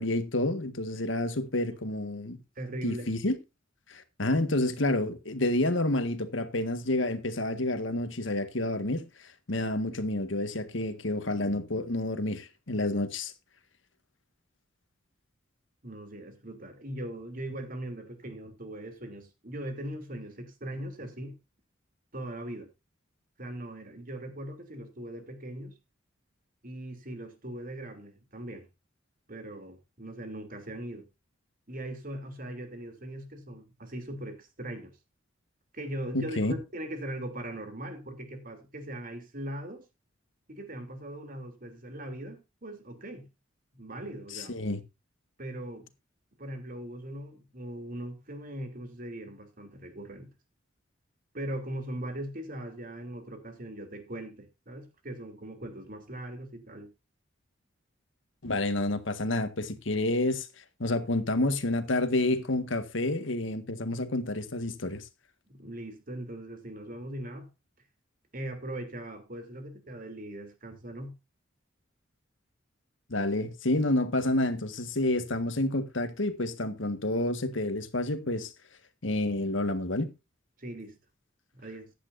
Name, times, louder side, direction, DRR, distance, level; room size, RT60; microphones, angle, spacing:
voice 1, 0.0-2.4 2.8-3.4 3.9-9.0 9.5-13.3 36.1-36.5 44.3-44.8 58.4-60.5 60.8-65.0 73.1-78.5 79.0-80.1, left 2 dB, 70° left, 1.6 m, -29 dB
voice 2, 2.5-3.1 15.8-21.3 22.1-22.7 23.4-25.7 26.6-28.7 29.3-31.1 31.7-34.9 35.7-39.8 40.5-43.3 43.7-44.6 45.4-45.9 46.4-50.3 51.3-56.9 65.5-67.5 68.3-71.1 80.6-81.0 81.5-81.9, right 1 dB, 45° right, 3.1 m, -40 dB
15.5 x 10.5 x 2.6 m
head